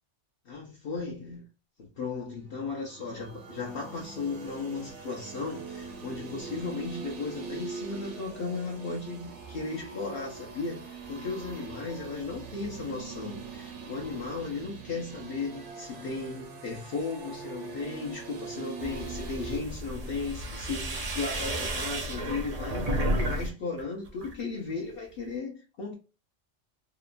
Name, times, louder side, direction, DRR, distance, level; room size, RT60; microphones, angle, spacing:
voice 1, 0.4-1.5 1.8-26.0, left 4 dB, 60° left, 0.8 m, -36 dB
sound 1, 2.7-19.6, right 4 dB, 80° right, 1.0 m, -42 dB
sound 2, 18.8-23.5 23.8-24.4, right 1 dB, 50° right, 0.5 m, -32 dB
2.8 x 2.2 x 2.4 m
omnidirectional pair, 1.2 m